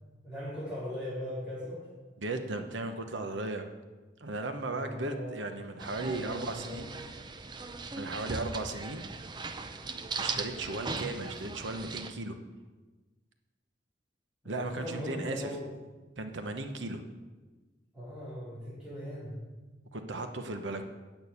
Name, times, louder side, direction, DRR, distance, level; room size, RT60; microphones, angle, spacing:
voice 1, 0.2-1.8 4.6-5.5 6.1-6.8 10.2-10.4 14.4-15.7 17.9-19.4, equal, 5° right, -14 dB, 4.4 m, -39 dB
voice 2, 2.2-3.6 4.2-6.9 7.9-9.0 10.2-12.4 14.4-15.5 16.2-17.0 19.9-20.8, right 2 dB, 80° right, 6 dB, 1.0 m, -36 dB
sound 1, 5.8-12.1, right 4 dB, 25° right, 0.5 m, -39 dB
9.0 x 6.3 x 8.4 m, 1.2 s
head